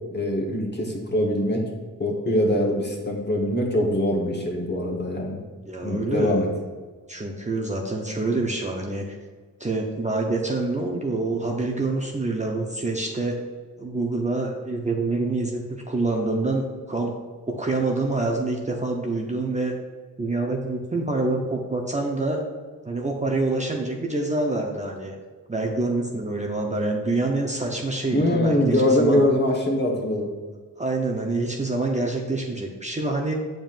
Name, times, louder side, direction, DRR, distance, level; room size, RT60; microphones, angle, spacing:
voice 1, 0.1-1.6 2.0-5.4 5.8-6.5 28.1-30.3, left 1 dB, 30° left, 0 dB, 1.4 m, -23 dB
voice 2, 5.7-6.4 7.1-9.2 9.6-13.4 13.8-17.1 17.5-19.7 20.2-22.4 22.8-25.1 25.5-29.3 30.8-33.3, right 2 dB, 20° right, 0 dB, 0.8 m, -26 dB
7.2 x 5.2 x 2.6 m, 1.5 s
cardioid pair, 60°, 36 cm